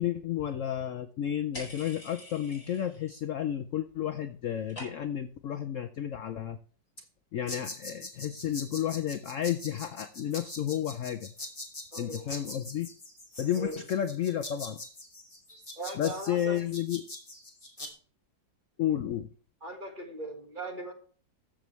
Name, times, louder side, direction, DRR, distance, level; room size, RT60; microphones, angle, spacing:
voice 1, 0.0-6.6 7.0-7.1 7.3-11.3 12.0-12.9 13.4-14.8 16.0-17.0 18.8-19.3, left 10 dB, 80° left, 10 dB, 0.7 m, -32 dB
sound 1, 1.5-3.1 3.4-4.0 4.2-5.3, left 1 dB, 50° left, 4.9 m, -46 dB
sound 2, 7.5-17.9, left 1 dB, 20° left, 2.2 m, -43 dB
voice 2, 11.9-12.4 13.6-13.8 15.7-16.6 19.6-20.9, right 2 dB, 30° right, 2 dB, 1.6 m, -39 dB
14.5 x 6.9 x 3.2 m, 0.44 s
omnidirectional pair, 2.0 m